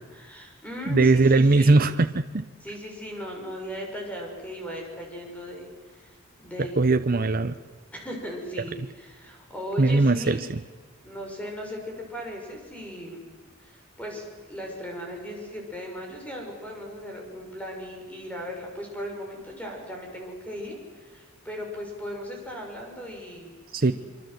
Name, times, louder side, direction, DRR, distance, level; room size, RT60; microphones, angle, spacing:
voice 1, 0.0-1.8 2.6-6.1 6.4-6.9 7.9-10.5 11.0-13.3 13.6-23.9, equal, 5° left, 1 dB, 6.4 m, -37 dB
voice 2, 0.9-2.5 6.8-7.6 9.8-10.6 23.7-23.9, right 3 dB, 45° right, 9 dB, 0.7 m, -20 dB
25.5 x 24.0 x 7.9 m, 1.5 s
head